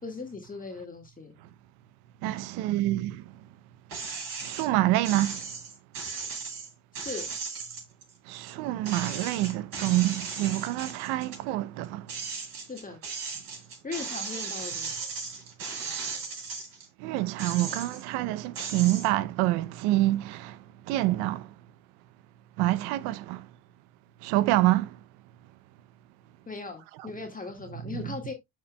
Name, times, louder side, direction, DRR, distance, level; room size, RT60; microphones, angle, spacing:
voice 1, 0.0-1.3 7.0-7.3 12.7-13.0 13.8-15.0 26.5-28.3, left 4 dB, 20° left, 1.8 m, -38 dB
voice 2, 2.2-3.2 4.4-5.4 8.3-12.1 17.0-20.6 20.9-21.5 22.6-23.4 24.2-24.9 27.9-28.0, right 16 dB, 75° right, 0.7 m, -26 dB
sound 1, 3.9-4.7 5.0-8.5 8.8-11.4 11.8-16.9 17.3-18.1 18.5-19.1, right 5 dB, 60° right, 4.8 m, -37 dB
13.0 x 4.4 x 2.2 m
supercardioid pair, 80°, 39 cm